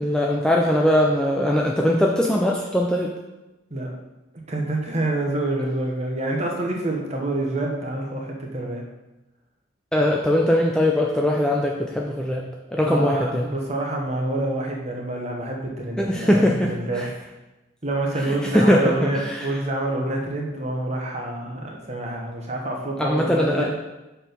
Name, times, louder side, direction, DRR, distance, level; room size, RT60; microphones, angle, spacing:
voice 1, 0.0-3.1 9.9-12.4 12.7-13.5 16.0-17.1 18.3-19.5 23.0-23.7, left 1 dB, 5° left, -1 dB, 0.4 m, -21 dB
voice 2, 4.5-8.8 12.8-17.3 17.8-23.7, right 1 dB, 30° right, 0 dB, 1.0 m, -27 dB
6.0 x 4.5 x 5.1 m, 1.0 s
head